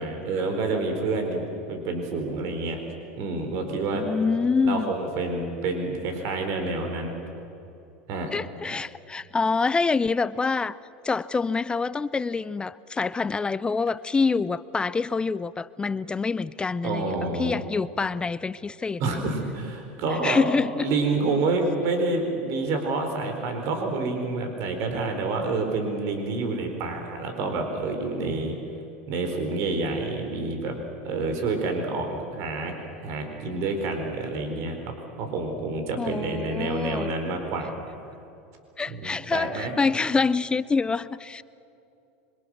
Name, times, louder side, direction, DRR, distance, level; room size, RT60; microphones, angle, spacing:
voice 1, 0.0-2.8 3.2-4.0 4.6-7.1 8.1-8.3 16.8-17.6 19.0-20.5 20.8-28.5 29.1-30.8 31.0-32.7 33.0-37.7 38.9-39.7, right 3 dB, 55° right, 5 dB, 4.6 m, -28 dB
voice 2, 3.9-4.9 8.3-10.8 11.0-19.2 20.2-20.9 36.0-37.1 38.8-41.4, left 4 dB, 15° left, 17 dB, 0.5 m, -26 dB
26.5 x 25.0 x 6.5 m, 2.8 s
supercardioid pair, 115°, 6 cm